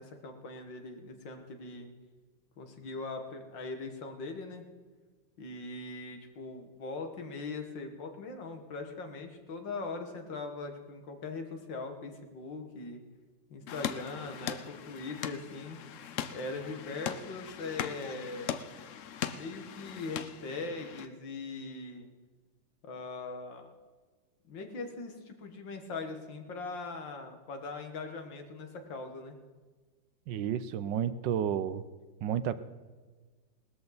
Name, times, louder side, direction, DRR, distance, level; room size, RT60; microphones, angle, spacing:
voice 1, 0.0-1.9 2.6-4.7 5.4-13.0 13.5-15.8 16.3-18.6 19.3-22.1 22.8-23.7 24.5-29.4, left 3 dB, 85° left, 5 dB, 2.3 m, -41 dB
sound 1, 13.7-21.1, left 9 dB, 65° left, 0.8 m, -40 dB
voice 2, 30.3-31.8 32.2-32.6, right 9 dB, 80° right, 14 dB, 1.4 m, -31 dB
19.0 x 13.5 x 4.0 m, 1.4 s
omnidirectional pair, 2.0 m